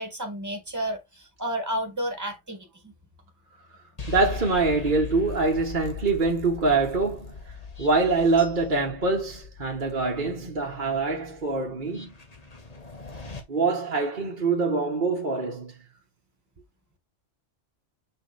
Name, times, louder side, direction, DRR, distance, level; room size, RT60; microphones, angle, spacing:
voice 1, 0.0-2.9, equal, 15° right, 1.9 m, -32 dB
sound 1, 4.0-13.4, left 4 dB, 30° left, 1.6 m, -40 dB
voice 2, 4.1-7.4 7.8-12.1 13.5-15.7, right 3 dB, 40° right, 1.4 m, -24 dB
6.4 x 5.1 x 3.4 m
omnidirectional pair, 1.3 m